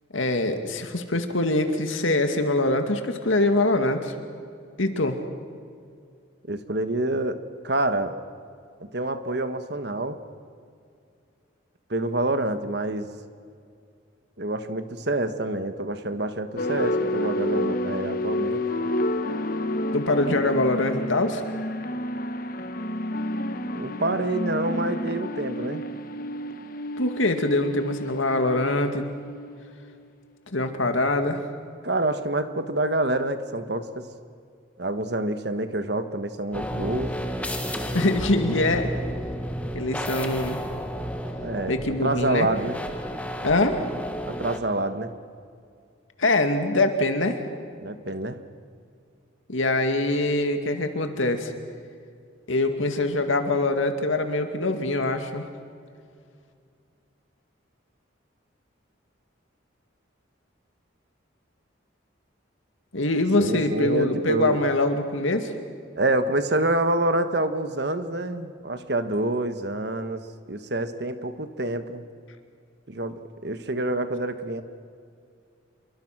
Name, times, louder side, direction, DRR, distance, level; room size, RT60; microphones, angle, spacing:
voice 1, 0.1-4.1 4.8-5.2 19.9-21.4 27.0-29.0 30.5-31.4 37.9-38.9 39.7-40.6 41.7-42.5 43.4-43.8 46.2-47.4 49.5-51.5 52.5-55.5 62.9-65.5, left 2 dB, 85° left, 6 dB, 2.3 m, -23 dB
voice 2, 6.5-7.4 7.6-8.2 8.8-10.2 11.9-13.1 14.4-18.6 23.7-25.8 31.8-34.1 34.8-37.1 41.4-42.8 44.3-45.1 47.8-48.4 63.4-64.6 65.9-72.0 72.9-74.6, right 2 dB, 55° right, 9 dB, 1.4 m, -27 dB
sound 1, 16.6-29.9, left 1 dB, 45° left, 1.1 m, -30 dB
sound 2, 36.5-44.6, equal, 5° left, 1.5 m, -32 dB
27.0 x 23.0 x 6.1 m, 2.3 s
head